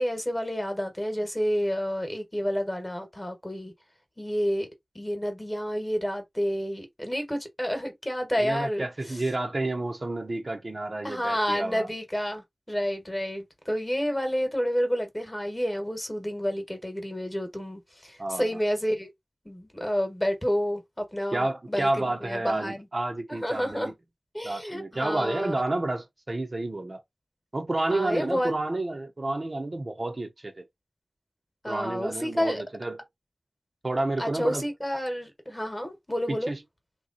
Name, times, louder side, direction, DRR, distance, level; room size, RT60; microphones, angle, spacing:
voice 1, 0.0-3.7 4.2-4.7 4.9-9.2 11.0-19.1 19.4-22.9 23.3-23.9 24.3-25.5 27.9-28.5 31.6-32.6 34.2-36.5, equal, 15° left, 1.2 m, -29 dB
voice 2, 8.4-11.9 18.2-18.5 21.3-23.9 24.4-27.0 27.5-30.7 31.7-33.0 33.8-34.7 36.3-36.6, right 2 dB, 50° right, 0.8 m, -30 dB
3.0 x 2.2 x 3.9 m
wide cardioid pair, 75°, 0 cm